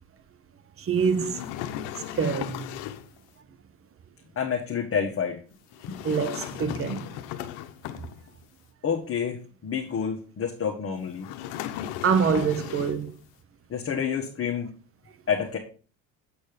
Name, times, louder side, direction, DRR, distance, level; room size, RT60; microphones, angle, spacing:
voice 1, 0.8-1.4 2.1-2.7 6.0-7.1 12.0-13.1, right 6 dB, 35° right, 0.9 m, -25 dB
sound 1, 0.9-3.2 5.7-8.4 11.2-13.1, left 11 dB, 75° left, 0.9 m, -36 dB
voice 2, 4.3-5.4 5.9-6.0 8.8-11.3 13.7-14.7 15.3-15.6, left 7 dB, 35° left, 1.4 m, -28 dB
8.1 x 4.3 x 5.1 m
supercardioid pair, 100°, 41 cm